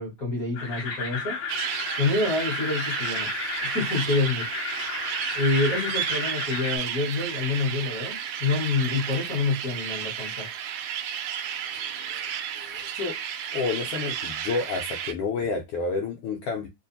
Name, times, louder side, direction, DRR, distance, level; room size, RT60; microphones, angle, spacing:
voice 1, 0.0-3.3 3.6-4.4 5.3-10.5, left 3 dB, 40° left, 1.4 m, -27 dB
sound 1, 0.5-6.8, left 4 dB, 55° left, 1.7 m, -33 dB
sound 2, 1.5-15.1, right 9 dB, 85° right, 2.0 m, -32 dB
voice 2, 11.8-12.3 12.5-13.1 13.5-16.7, left 4 dB, 85° left, 1.3 m, -30 dB
4.4 x 2.4 x 2.6 m
omnidirectional pair, 3.3 m